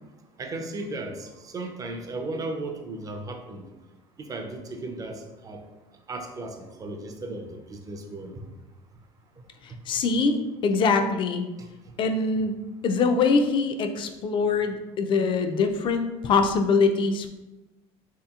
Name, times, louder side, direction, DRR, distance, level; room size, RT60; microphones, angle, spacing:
voice 1, 0.4-3.6 4.2-5.6 6.1-8.4, right 2 dB, 25° right, 4 dB, 0.5 m, -35 dB
voice 2, 9.6-10.4 10.6-11.5 12.0-12.6 12.8-17.3, left 4 dB, 40° left, 6 dB, 0.4 m, -23 dB
3.3 x 2.8 x 2.3 m, 1.1 s
supercardioid pair, 100°, 13 cm